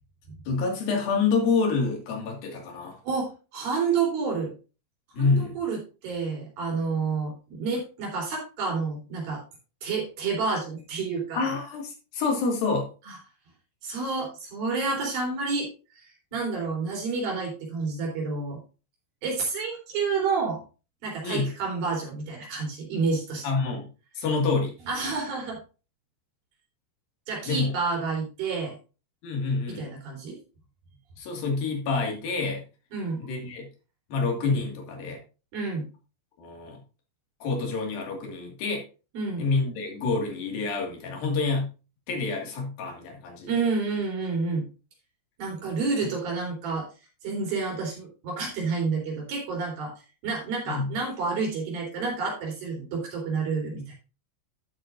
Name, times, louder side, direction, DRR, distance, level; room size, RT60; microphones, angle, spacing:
voice 1, 0.5-3.0 5.1-5.6 11.4-12.9 21.2-21.5 23.4-23.9 24.2-24.8 27.5-27.7 29.2-29.9 31.2-32.6 33.2-33.7 34.1-35.2 36.4-36.8 37.4-38.8 39.4-41.7 42.1-43.6 46.0-46.1 50.7-51.0, left 4 dB, 85° left, 1 dB, 3.9 m, -27 dB
voice 2, 3.1-4.5 5.2-9.4 9.8-11.4 13.1-13.2 13.8-15.7 15.9-16.1 16.3-18.6 19.2-20.6 21.0-23.5 24.9-25.6 27.3-28.8 29.8-30.4 32.9-33.2 35.5-35.9 39.1-39.5 43.5-44.7 45.4-46.9 47.2-49.9 50.2-53.9, right 4 dB, 90° right, -1 dB, 5.4 m, -29 dB
12.5 x 7.9 x 2.6 m, 0.33 s
omnidirectional pair, 4.0 m